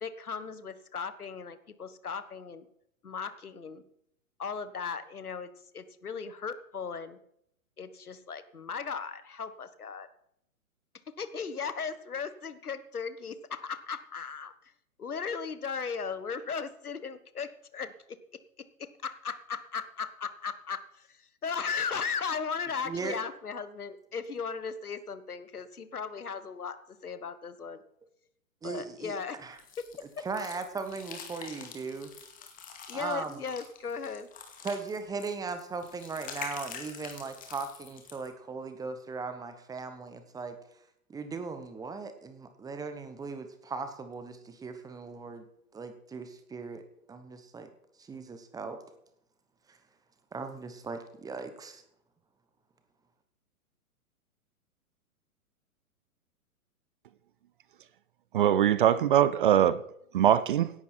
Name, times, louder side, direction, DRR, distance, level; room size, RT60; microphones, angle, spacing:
voice 1, 0.0-2.7 3.0-3.8 4.4-5.5 5.7-7.2 7.8-10.1 11.2-14.7 15.0-18.2 18.6-26.8 27.0-27.8 28.6-29.4 30.2-30.3 32.9-34.3, left 6 dB, 80° left, 13 dB, 1.4 m, -37 dB
voice 2, 22.8-23.2 28.6-29.2 29.4-29.6 30.2-32.1 32.9-33.4 34.6-40.6 41.1-45.4 45.7-46.8 47.1-47.7 48.0-48.8 49.7-49.8 50.3-51.8, right 4 dB, 10° right, 9 dB, 1.0 m, -38 dB
sound 1, 29.6-38.3, left 6 dB, 20° left, 2.3 m, -46 dB
voice 3, 58.3-59.8 60.1-60.7, right 10 dB, 35° right, 18 dB, 0.5 m, -22 dB
17.0 x 11.0 x 4.4 m, 0.75 s
figure-of-eight pair, 120°, 44 cm